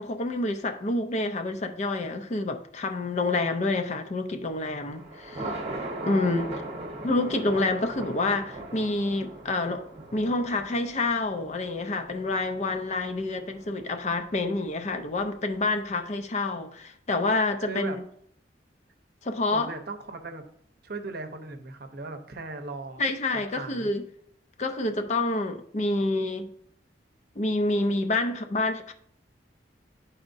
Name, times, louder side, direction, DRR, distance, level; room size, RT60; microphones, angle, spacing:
voice 1, 0.0-5.6 6.0-6.5 7.0-9.8 10.1-18.0 19.2-19.7 23.0-24.0 24.6-26.5 27.4-28.9, left 2 dB, 40° left, 0.6 m, -28 dB
Thunder, 4.5-15.8, right 2 dB, 35° right, 1.1 m, -40 dB
voice 2, 6.0-7.1 17.6-18.0 19.5-20.4 20.8-23.0 23.5-23.9, right 3 dB, 60° right, 0.7 m, -38 dB
11.5 x 4.2 x 2.6 m
head